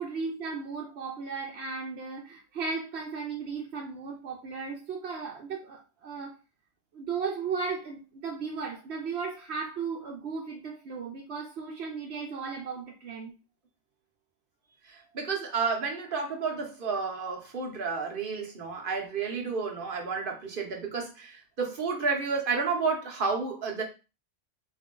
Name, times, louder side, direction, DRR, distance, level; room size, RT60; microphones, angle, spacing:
voice 1, 0.0-6.4 6.9-13.3, right 5 dB, 80° right, -2 dB, 1.0 m, -35 dB
voice 2, 14.9-23.8, right 5 dB, 55° right, 1 dB, 1.0 m, -31 dB
3.2 x 2.7 x 3.7 m, 0.31 s
omnidirectional pair, 1.1 m